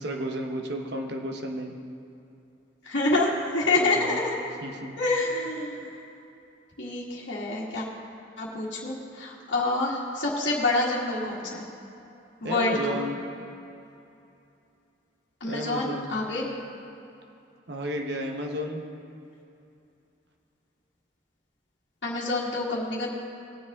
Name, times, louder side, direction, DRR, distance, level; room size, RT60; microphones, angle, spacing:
voice 1, 0.0-1.7 3.8-4.2 4.6-4.9 12.4-13.2 15.4-16.1 17.7-18.8, right 1 dB, 60° right, 2 dB, 1.1 m, -32 dB
voice 2, 2.8-4.4 5.0-5.9 6.8-7.9 8.4-11.7 12.4-13.0 15.4-16.5 22.0-23.1, left 2 dB, 70° left, -9 dB, 1.7 m, -27 dB
20.0 x 7.3 x 3.6 m, 2.7 s
head